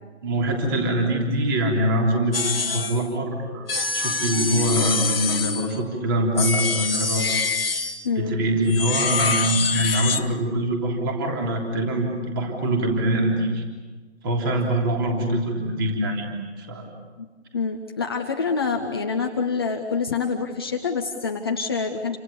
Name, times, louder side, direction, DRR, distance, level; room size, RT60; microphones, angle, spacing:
voice 1, 0.2-7.3 8.2-13.6 14.2-16.3 16.6-16.9, right 1 dB, 20° right, 1 dB, 3.5 m, -24 dB
sound 1, 2.3-3.1 3.7-5.8 6.4-8.1 8.7-10.3, left 4 dB, 55° left, 1.4 m, -25 dB
voice 2, 8.0-8.4 17.5-22.2, left 5 dB, 20° left, 2 dB, 1.1 m, -26 dB
29.5 x 26.5 x 7.0 m, 1.3 s
figure-of-eight pair, 160°, 35 cm